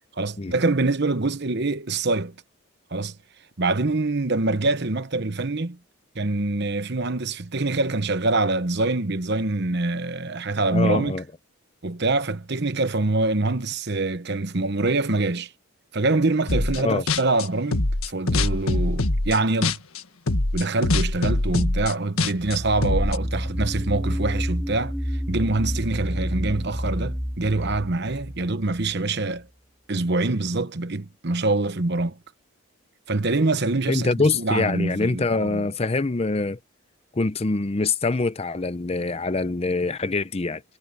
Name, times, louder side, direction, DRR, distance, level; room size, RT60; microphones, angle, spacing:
voice 1, 0.2-2.3 2.9-3.1 3.6-5.8 6.1-11.2 11.8-15.5 15.9-19.8 20.5-24.9 25.3-29.5 29.9-32.2 33.1-35.6, right 2 dB, 50° right, 1.0 m, -25 dB
voice 2, 10.7-11.2 16.8-17.0 33.9-36.6 37.1-40.6, left 3 dB, 25° left, 0.5 m, -24 dB
sound 1, 16.5-16.8 17.1-20.0 20.3-23.2, left 2 dB, 75° left, 1.6 m, -23 dB
sound 2, 22.3-28.9, equal, ahead, 2.0 m, -29 dB
head